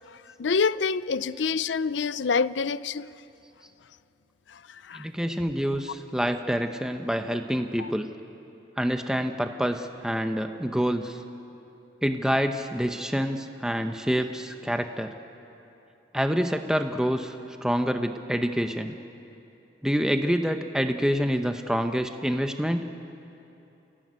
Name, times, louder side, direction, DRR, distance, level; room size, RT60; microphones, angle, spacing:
voice 1, 0.4-3.1 4.5-5.1 7.8-7.9, left 5 dB, 90° left, 0.5 m, -27 dB
voice 2, 4.9-8.1 8.8-11.2 12.0-15.1 16.1-17.4 17.6-18.9 19.8-23.0, equal, 5° right, 0.8 m, -27 dB
29.5 x 16.5 x 9.5 m
head